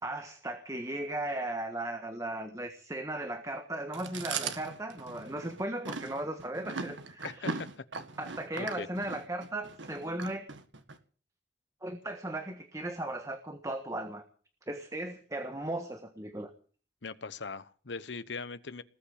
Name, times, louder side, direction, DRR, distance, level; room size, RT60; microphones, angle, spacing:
voice 1, 0.0-7.6 8.2-10.5 11.8-14.2 14.7-16.5, right 1 dB, 15° right, 7 dB, 1.5 m, -37 dB
Chewing mastication, 3.9-11.0, right 4 dB, 85° right, 1.7 m, -39 dB
voice 2, 7.2-7.8 8.6-8.9 17.0-18.8, left 4 dB, 75° left, 15 dB, 0.9 m, -40 dB
19.5 x 8.5 x 8.6 m, 0.42 s
head